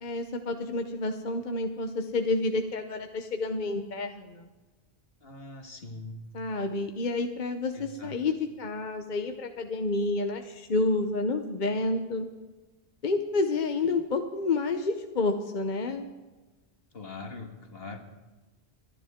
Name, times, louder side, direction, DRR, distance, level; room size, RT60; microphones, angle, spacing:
voice 1, 0.0-4.4 6.3-12.3 13.0-16.1, left 3 dB, 50° left, 6 dB, 0.9 m, -29 dB
voice 2, 5.2-6.2 7.7-8.2 16.9-18.0, left 3 dB, 70° left, 4 dB, 2.0 m, -42 dB
23.5 x 10.5 x 3.6 m, 1.2 s
omnidirectional pair, 1.1 m